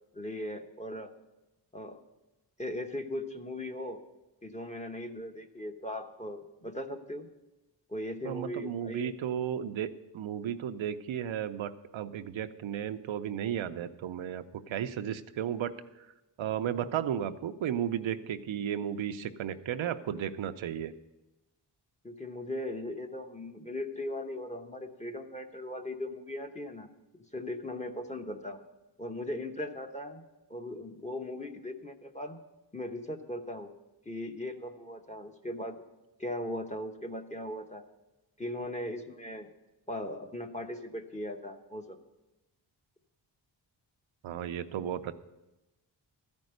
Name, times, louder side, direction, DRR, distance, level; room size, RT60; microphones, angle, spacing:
voice 1, 0.1-1.1 1.7-2.0 2.6-4.0 4.4-7.3 7.9-9.1 22.0-26.9 27.3-28.6 29.0-30.2 30.5-32.4 32.7-33.7 34.0-35.8 36.2-37.8 38.4-39.5 39.9-42.0, left 1 dB, 15° left, 5 dB, 1.0 m, -38 dB
voice 2, 8.2-15.7 16.4-20.9 44.2-45.1, right 9 dB, 85° right, 9 dB, 0.7 m, -34 dB
13.0 x 5.3 x 7.8 m, 1.0 s
wide cardioid pair, 85°, 45 cm